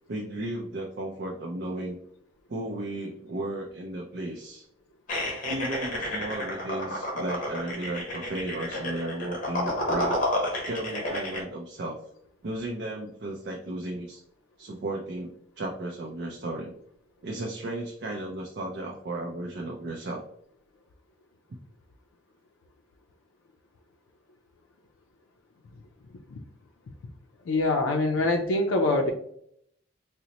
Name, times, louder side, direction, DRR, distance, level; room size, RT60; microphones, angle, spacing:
voice 1, 0.1-2.0 2.5-4.6 5.5-10.2 10.6-12.0 12.4-14.2 14.6-16.7 17.2-20.2, right 1 dB, 55° right, 0 dB, 0.4 m, -34 dB
sound 1, 5.1-11.4, left 1 dB, 40° left, 0.9 m, -31 dB
voice 2, 27.5-29.1, left 2 dB, 80° left, 1 dB, 0.4 m, -24 dB
3.9 x 2.0 x 2.8 m, 0.68 s
head